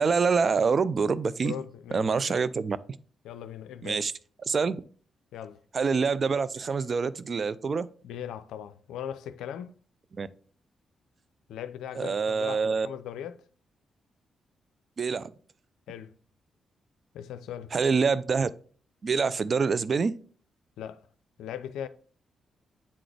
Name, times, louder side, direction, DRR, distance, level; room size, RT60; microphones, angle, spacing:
voice 1, 0.0-1.6 1.9-2.8 3.8-4.1 4.5-4.8 5.7-7.9 10.1-10.3 12.0-12.9 15.0-15.3 17.7-18.5 19.0-20.1, right 5 dB, 50° right, 0.4 m, -26 dB
voice 2, 1.4-2.5 3.2-4.0 5.3-5.6 8.0-9.7 11.5-13.4 15.9-16.1 17.1-17.7 20.8-21.1 21.4-21.9, left 9 dB, 80° left, 0.4 m, -39 dB
8.5 x 3.9 x 3.3 m
hypercardioid pair, 45°, 0 cm